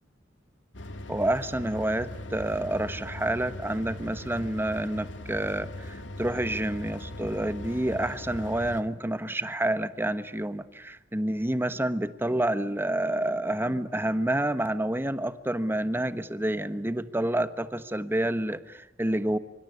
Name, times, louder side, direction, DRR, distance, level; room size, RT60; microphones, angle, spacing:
sound 1, 0.7-8.8, left 1 dB, 85° left, 2.2 m, -40 dB
voice 1, 1.1-19.4, right 1 dB, 10° right, 12 dB, 1.2 m, -28 dB
25.0 x 24.5 x 9.7 m, 0.92 s
head